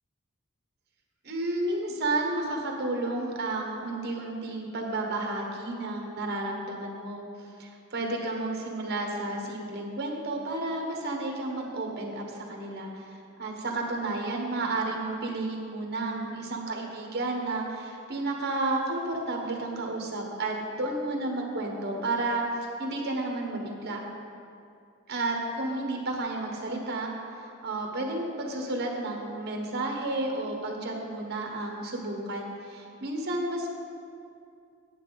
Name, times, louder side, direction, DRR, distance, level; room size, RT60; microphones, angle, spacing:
voice 1, 1.2-7.3 7.6-13.1 13.4-22.5 22.8-24.0 25.1-27.1 27.6-33.7, right 2 dB, 50° right, 1 dB, 1.3 m, -31 dB
9.5 x 8.2 x 4.0 m, 2.4 s
head